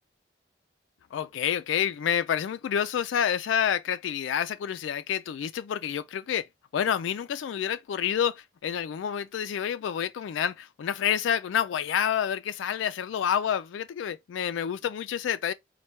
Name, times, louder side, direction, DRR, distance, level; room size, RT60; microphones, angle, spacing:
voice 1, 1.1-6.5 6.7-15.5, left 8 dB, 85° left, 0.3 m, -28 dB
4.3 x 2.2 x 4.4 m
head